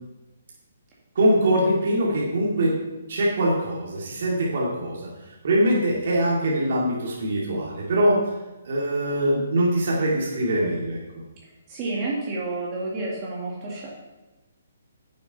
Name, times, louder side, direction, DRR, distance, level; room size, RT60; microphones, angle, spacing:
voice 1, 1.1-2.8 3.1-5.1 5.4-8.2 8.6-11.0, right 1 dB, 60° right, -5 dB, 2.4 m, -22 dB
voice 2, 11.7-14.0, right 2 dB, 30° right, -5 dB, 2.0 m, -30 dB
9.9 x 6.8 x 4.1 m, 1.1 s
figure-of-eight pair, 140°, 0 cm